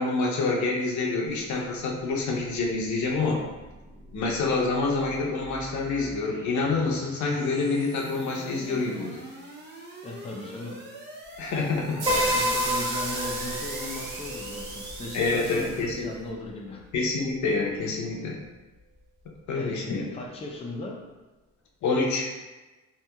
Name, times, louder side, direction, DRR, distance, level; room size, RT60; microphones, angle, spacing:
voice 1, 0.0-3.4 4.1-9.2 11.4-12.0 15.1-16.1 16.9-18.4 19.5-20.1 21.8-22.3, left 3 dB, 70° left, -1 dB, 0.6 m, -27 dB
sound 1, 2.3-15.4, right 1 dB, 35° right, 0.7 m, -45 dB
voice 2, 10.0-10.8 12.0-16.8 19.5-21.0, left 2 dB, 20° left, -2 dB, 0.5 m, -37 dB
sound 2, 12.0-15.8, right 2 dB, 75° right, 0.8 m, -34 dB
Piano, 12.1-16.5, left 1 dB, 20° right, 1.4 m, -31 dB
2.8 x 2.7 x 2.3 m, 1.2 s
cardioid pair, 90°, 30 cm